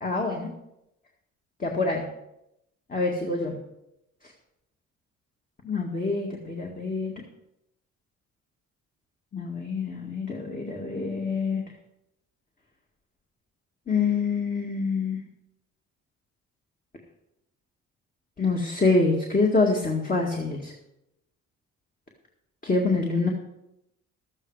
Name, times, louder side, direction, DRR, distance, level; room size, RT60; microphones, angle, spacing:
voice 1, 0.0-0.5 1.6-2.1 2.9-3.6 5.6-7.1 9.3-11.6 13.9-15.2 18.4-20.7 22.6-23.3, left 3 dB, 30° left, 0 dB, 1.9 m, -26 dB
12.5 x 8.9 x 4.8 m, 0.85 s
cardioid pair, 90°, 30 cm